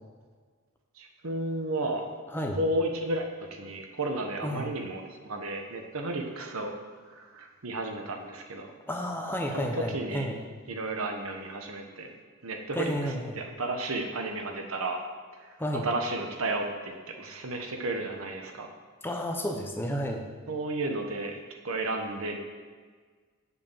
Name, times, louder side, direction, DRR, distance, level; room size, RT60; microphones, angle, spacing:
voice 1, 0.9-2.1 2.6-6.7 7.1-8.7 9.5-10.3 10.7-12.1 12.4-15.0 15.4-15.6 15.8-18.7 20.5-21.4 21.6-22.4, right 2 dB, 75° right, 3 dB, 1.2 m, -33 dB
voice 2, 8.9-10.4 12.7-13.3 15.6-15.8 19.0-20.2, equal, 10° left, 2 dB, 0.8 m, -31 dB
8.2 x 5.1 x 7.1 m, 1.6 s
head